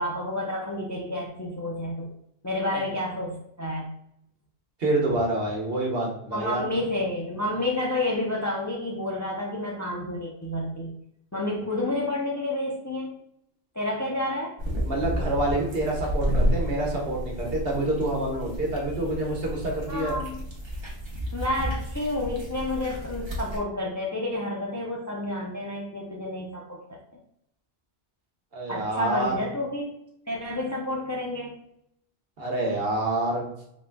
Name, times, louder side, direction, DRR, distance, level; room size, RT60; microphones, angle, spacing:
voice 1, 0.0-2.1 2.4-3.9 6.3-10.9 11.3-13.2 13.7-14.6 19.9-20.4 21.3-27.0 28.7-30.0 30.3-31.6, left 1 dB, 25° left, -2 dB, 0.4 m, -30 dB
voice 2, 4.8-6.7 14.9-20.2 28.5-29.4 32.4-33.4, right 2 dB, 65° right, -1 dB, 1.2 m, -27 dB
sound 1, 14.6-23.6, equal, 30° right, 0.9 m, -31 dB
3.8 x 3.8 x 2.2 m, 0.75 s
omnidirectional pair, 1.1 m